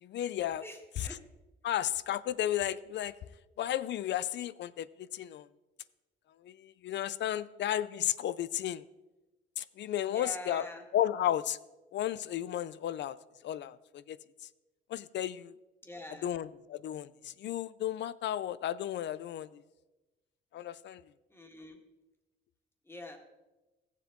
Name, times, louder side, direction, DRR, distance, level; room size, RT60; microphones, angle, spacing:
voice 1, 0.0-0.6 1.0-1.2 1.6-3.2 3.6-5.5 6.4-8.8 9.6-11.6 11.9-13.2 13.4-14.2 14.9-15.5 16.1-19.6 20.5-21.0, left 11 dB, 65° left, 17 dB, 0.5 m, -33 dB
voice 2, 10.1-10.8 15.8-16.3 21.3-21.8 22.9-23.2, left 1 dB, 10° left, 3 dB, 1.8 m, -44 dB
15.0 x 7.4 x 3.8 m, 1.1 s
cardioid pair, 90°, 20 cm